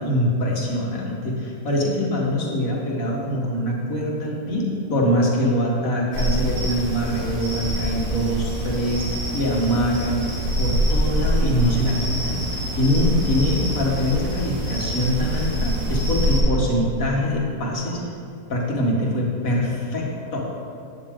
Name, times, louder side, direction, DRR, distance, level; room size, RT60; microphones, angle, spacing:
voice 1, 0.0-18.0 18.5-20.4, equal, 65° left, -2 dB, 2.2 m, -23 dB
sound 1, 6.1-16.4, equal, 40° right, 2.6 m, -25 dB
12.5 x 9.7 x 3.8 m, 2.5 s
omnidirectional pair, 1.5 m